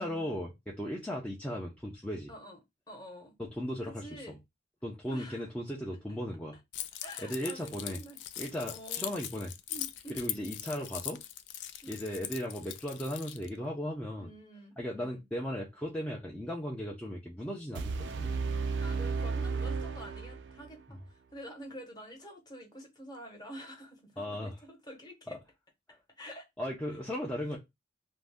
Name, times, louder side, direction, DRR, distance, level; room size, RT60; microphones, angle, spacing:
voice 1, 0.0-2.3 3.4-4.4 4.8-6.6 7.2-8.0 8.4-9.5 10.1-11.2 11.9-14.3 14.8-18.3 20.9-21.0 24.2-24.6 25.3-25.4 26.6-27.6, equal, 5° left, 0.4 m, -37 dB
voice 2, 2.3-2.6 2.9-3.3 3.8-4.4 5.1-5.4 7.0-8.2 8.5-9.1 9.7-10.5 11.8-12.0 14.2-15.2 18.8-25.4 26.2-26.5, equal, 25° left, 0.9 m, -48 dB
Keys jangling, 6.7-13.5, left 12 dB, 80° left, 0.3 m, -41 dB
sound 1, 17.7-20.7, right 4 dB, 90° right, 0.4 m, -33 dB
2.6 x 2.1 x 3.3 m
head